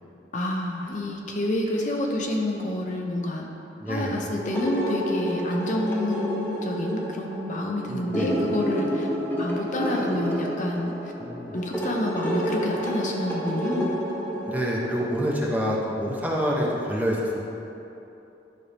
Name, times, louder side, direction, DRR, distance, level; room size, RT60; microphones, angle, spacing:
voice 1, 0.3-3.5 3.9-9.1 9.4-10.9 11.5-13.9, left 1 dB, 45° left, 0 dB, 0.8 m, -28 dB
voice 2, 3.8-4.2 7.9-8.3 11.2-11.6 14.4-17.4, equal, 10° right, -3 dB, 0.9 m, -27 dB
sound 1, 4.3-15.1, equal, 10° left, 1.3 m, -30 dB
11.5 x 5.5 x 3.5 m, 2.9 s
head